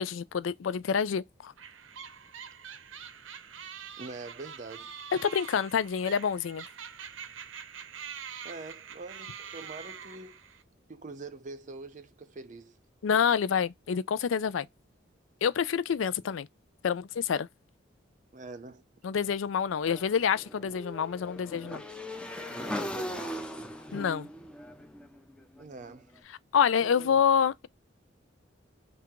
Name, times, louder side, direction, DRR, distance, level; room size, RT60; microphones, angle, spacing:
voice 1, 0.0-1.5 5.2-6.6 13.0-14.7 15.4-16.5 16.8-17.5 19.0-21.8 23.9-24.3 26.5-27.7, left 7 dB, 90° left, 0.4 m, -27 dB
sound 1, 1.6-10.6, right 7 dB, 85° right, 0.7 m, -45 dB
voice 2, 4.0-5.0 8.4-10.4 10.9-12.8 18.3-18.8 22.5-23.5 25.6-26.1 26.7-27.2, right 3 dB, 40° right, 0.5 m, -44 dB
Motorcycle / Engine, 19.8-25.9, equal, 5° left, 0.5 m, -39 dB
3.6 x 2.4 x 4.5 m
head